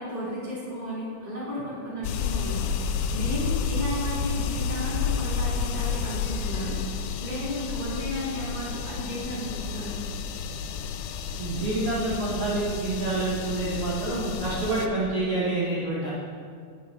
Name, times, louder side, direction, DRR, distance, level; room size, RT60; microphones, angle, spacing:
voice 1, 0.0-2.7 3.1-6.8 7.2-10.0, equal, 15° left, -8 dB, 2.0 m, -33 dB
sound 1, 2.0-14.9, left 6 dB, 85° left, 2.3 m, -30 dB
voice 2, 11.4-16.1, right 2 dB, 65° right, -7 dB, 1.4 m, -28 dB
11.0 x 9.9 x 3.3 m, 2.1 s
omnidirectional pair, 4.8 m